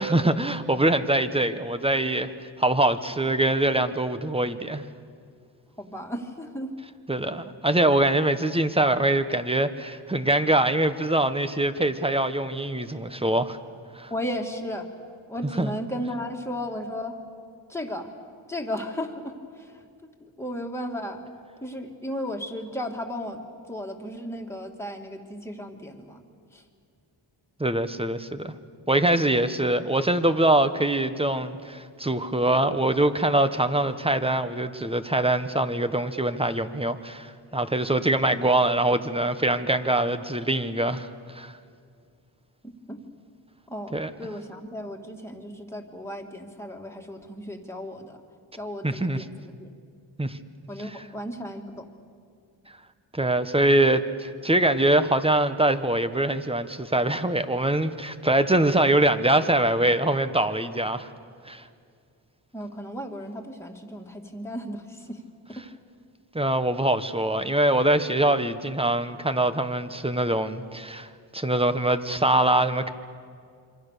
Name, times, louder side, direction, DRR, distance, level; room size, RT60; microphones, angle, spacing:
voice 1, 0.0-2.3 2.6-4.8 7.1-13.6 13.9-14.1 15.6-15.7 27.6-28.5 28.9-41.1 41.3-41.5 43.9-44.1 48.8-49.2 50.2-50.4 53.1-61.1 61.4-61.6 66.3-72.9, right 1 dB, 10° right, 10 dB, 1.2 m, -23 dB
voice 2, 5.8-6.7 14.1-14.9 15.3-17.2 17.7-18.1 18.5-21.3 21.6-26.2 26.5-26.6 42.6-43.0 43.7-48.2 48.6-49.7 50.7-51.9 62.5-65.2 65.5-65.7, equal, 5° left, 2 dB, 2.5 m, -35 dB
27.0 x 25.0 x 6.8 m, 2.3 s
wide cardioid pair, 90°, 46 cm